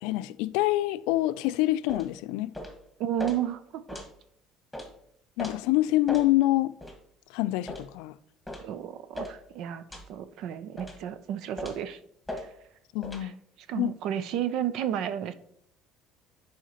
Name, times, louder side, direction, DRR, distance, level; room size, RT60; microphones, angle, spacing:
voice 1, 0.0-2.5 5.4-6.7 7.3-8.2 12.9-13.4 13.8-13.9, left 16 dB, 85° left, 0.3 m, -26 dB
footsteps (Streety NR), 1.9-2.1 2.5-2.8 3.2-3.4 3.9-4.1 4.7-4.9 5.4-5.6 6.1-6.3 6.8-7.0 7.7-7.9 8.5-8.7 9.1-9.4 9.9-10.1 10.8-11.0 11.6-11.8 12.3-12.4 13.0-13.2, left 1 dB, ahead, 1.5 m, -37 dB
voice 2, 3.0-4.0 8.6-9.8 10.1-12.0 12.3-12.5 13.2-13.3 13.7-15.3, right 10 dB, 65° right, 0.5 m, -32 dB
10.0 x 5.0 x 2.9 m
cardioid pair, 125°, 0 cm